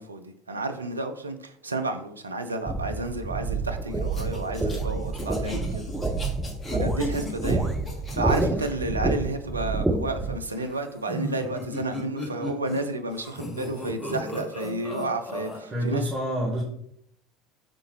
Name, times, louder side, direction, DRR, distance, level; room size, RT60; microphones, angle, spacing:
voice 1, 0.0-6.2 6.7-7.7 8.1-16.1, right 2 dB, 80° right, 0.4 m, -31 dB
sound 1, 2.7-10.4, right 3 dB, 10° right, 0.5 m, -28 dB
sound 2, 4.1-8.7 10.5-12.8 13.1-15.6, left 1 dB, 20° left, 1.2 m, -36 dB
voice 2, 15.7-16.6, equal, 30° right, 1.2 m, -27 dB
4.3 x 3.7 x 3.0 m
figure-of-eight pair, 70°, 0 cm